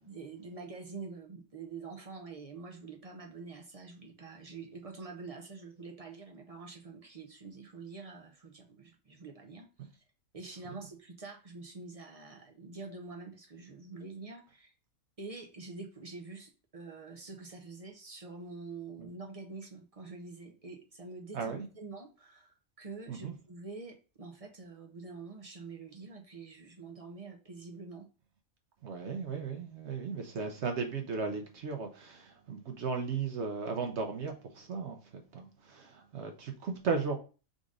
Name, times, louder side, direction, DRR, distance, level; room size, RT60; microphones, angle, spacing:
voice 1, 0.0-10.0 10.3-14.7 15.2-28.1, right 4 dB, 40° right, 0.5 m, -46 dB
voice 2, 21.3-21.7 23.1-23.3 28.8-35.0 35.3-37.2, right 5 dB, 60° right, 0.9 m, -36 dB
3.9 x 2.6 x 4.7 m
omnidirectional pair, 1.4 m